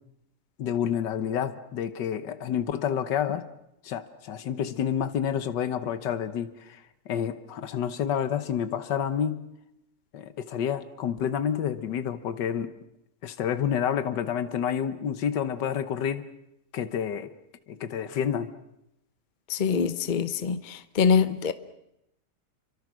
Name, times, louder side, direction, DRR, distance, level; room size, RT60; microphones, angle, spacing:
voice 1, 0.6-3.5 3.8-9.5 10.1-12.7 13.2-16.3 16.7-17.3 17.7-18.5, left 8 dB, 85° left, 1.7 m, -29 dB
voice 2, 19.5-21.5, left 6 dB, 35° left, 0.9 m, -24 dB
28.5 x 24.0 x 6.3 m
omnidirectional pair, 1.8 m